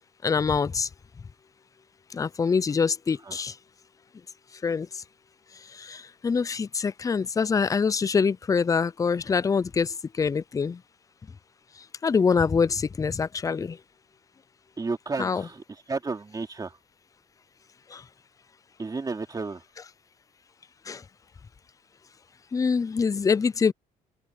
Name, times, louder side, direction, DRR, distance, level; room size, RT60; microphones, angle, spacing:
voice 1, 0.2-0.9 2.1-3.6 4.6-5.0 5.5-10.8 11.8-13.8 15.2-15.5 17.9-18.0 20.9-21.0 22.5-23.7, left 5 dB, 20° left, 0.5 m, -25 dB
voice 2, 14.8-16.8 18.8-19.6, right 4 dB, 20° right, 3.0 m, -32 dB
open air
cardioid pair, 110°, 17 cm